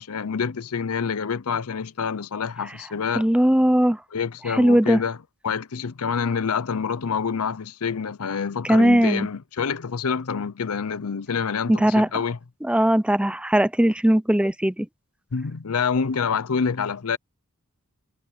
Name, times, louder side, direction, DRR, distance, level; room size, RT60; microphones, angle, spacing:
voice 1, 0.0-3.3 4.1-5.2 5.4-12.4 15.3-17.2, left 6 dB, 85° left, 0.6 m, -27 dB
voice 2, 3.2-4.0 4.5-5.0 8.6-9.3 11.7-12.1 12.7-14.9, right 1 dB, 5° right, 0.6 m, -19 dB
head